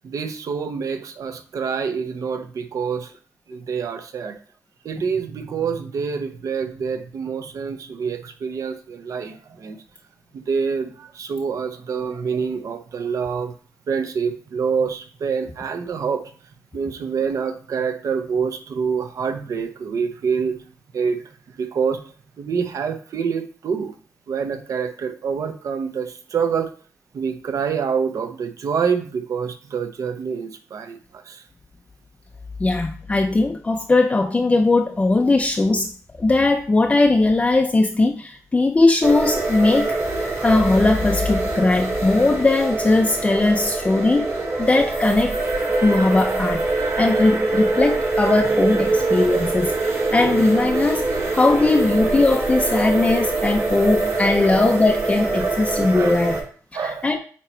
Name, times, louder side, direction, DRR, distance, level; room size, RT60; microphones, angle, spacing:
voice 1, 0.0-3.1 3.5-4.4 4.8-9.8 10.3-13.5 13.9-16.3 16.7-20.6 20.9-21.3 21.6-22.0 22.4-23.9 24.3-26.7 27.1-31.4 54.4-54.5 55.4-55.5 55.9-56.2 56.7-57.1, right 6 dB, 65° right, 7 dB, 0.8 m, -26 dB
voice 2, 32.6-44.3 44.6-45.4 45.8-49.7 50.1-56.4 56.7-57.2, left 2 dB, 20° left, 3 dB, 0.5 m, -19 dB
sound 1, 39.0-56.4, right 3 dB, 50° right, 2.3 m, -24 dB
8.5 x 2.9 x 4.4 m, 0.42 s
wide cardioid pair, 125°, 6 cm